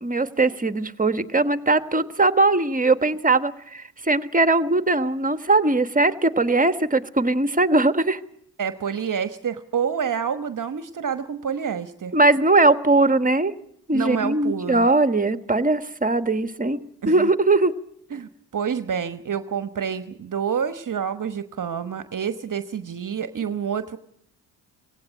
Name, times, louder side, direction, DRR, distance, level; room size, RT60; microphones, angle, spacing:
voice 1, 0.0-8.2 12.1-13.5 13.9-17.7, right 2 dB, 20° right, 11 dB, 1.5 m, -20 dB
voice 2, 8.6-12.1 13.9-14.9 17.0-17.3 18.1-24.0, right 7 dB, 45° right, 11 dB, 1.1 m, -28 dB
18.0 x 17.5 x 9.8 m, 0.70 s
supercardioid pair, 50°, 44 cm